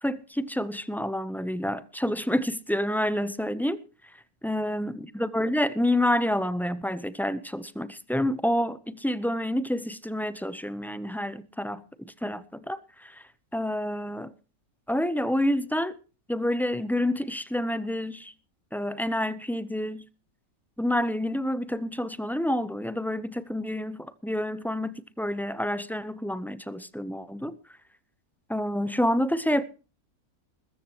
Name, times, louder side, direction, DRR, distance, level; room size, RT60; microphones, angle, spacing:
voice 1, 0.0-3.8 4.4-13.2 13.5-14.3 14.9-16.0 16.3-18.3 18.7-20.0 20.8-27.6 28.5-29.6, left 1 dB, 5° left, 0.4 m, -28 dB
21.0 x 14.0 x 3.0 m
omnidirectional pair, 1.5 m